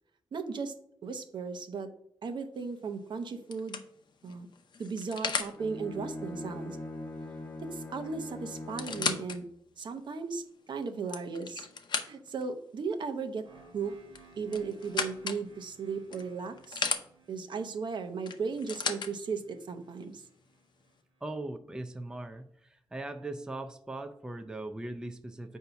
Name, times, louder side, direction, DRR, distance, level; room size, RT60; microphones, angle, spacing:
voice 1, 0.3-0.8 1.0-1.9 2.2-3.8 4.2-4.5 4.8-6.8 7.6-9.5 9.8-11.7 12.0-13.4 13.7-13.9 14.4-16.9 17.3-20.3, right 5 dB, 65° right, 7 dB, 0.7 m, -36 dB
sound 1, 2.6-2.9 3.5-5.6 7.6-7.7 8.0-8.1 8.6-9.4 10.0-10.1 10.8-12.4 14.1-15.4 16.1-17.0 18.3-19.1 20.0-20.1, left 5 dB, 60° left, 0.6 m, -35 dB
Bowed string instrument, 5.5-9.4, left 2 dB, 25° left, 0.8 m, -41 dB
sound 2, 13.4-21.3, right 4 dB, 80° right, 1.2 m, -60 dB
voice 2, 21.2-25.6, right 2 dB, 10° right, 7 dB, 0.4 m, -40 dB
7.9 x 2.7 x 5.7 m, 0.71 s
wide cardioid pair, 125°, 9 cm